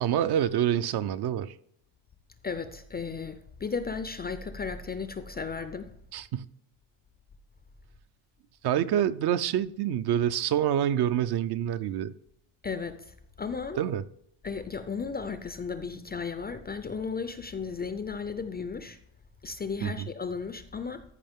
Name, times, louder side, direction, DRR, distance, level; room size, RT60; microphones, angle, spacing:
voice 1, 0.0-1.5 6.1-6.5 8.6-12.1 13.8-14.0 19.8-20.1, right 10 dB, 50° right, 0.5 m, -27 dB
voice 2, 2.4-5.9 12.6-13.8 14.4-19.0 19.4-21.0, left 5 dB, 20° left, 0.4 m, -35 dB
14.0 x 5.4 x 3.6 m
cardioid pair, 130°, 50 cm